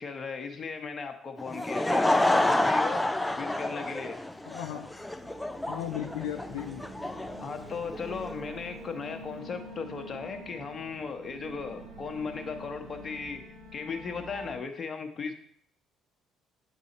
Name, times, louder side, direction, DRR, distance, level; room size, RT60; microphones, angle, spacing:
voice 1, 0.0-4.2 7.4-13.5 13.7-15.3, left 5 dB, 40° left, 6 dB, 1.0 m, -37 dB
Laughter / Crowd, 1.4-8.3, left 1 dB, 10° left, 0.4 m, -28 dB
sound 1, 2.9-14.5, equal, 75° right, 2.5 m, -47 dB
voice 2, 4.5-4.9 5.7-6.8, left 11 dB, 75° left, 5 dB, 0.4 m, -35 dB
sound 2, 5.8-12.7, right 3 dB, 35° right, 0.8 m, -53 dB
7.4 x 4.0 x 4.1 m, 0.64 s
hypercardioid pair, 55°, 0 cm